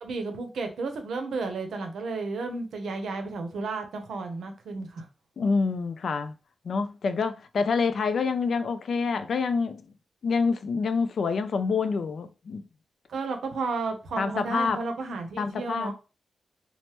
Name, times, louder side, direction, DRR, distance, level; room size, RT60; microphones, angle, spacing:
voice 1, 0.0-5.1 13.1-15.9, right 3 dB, 85° right, 0.6 m, -32 dB
voice 2, 5.4-6.3 6.6-9.8 10.2-12.6 14.2-14.8 15.4-15.9, left 5 dB, 55° left, 0.3 m, -27 dB
3.2 x 2.0 x 2.8 m
wide cardioid pair, 180°, 0 cm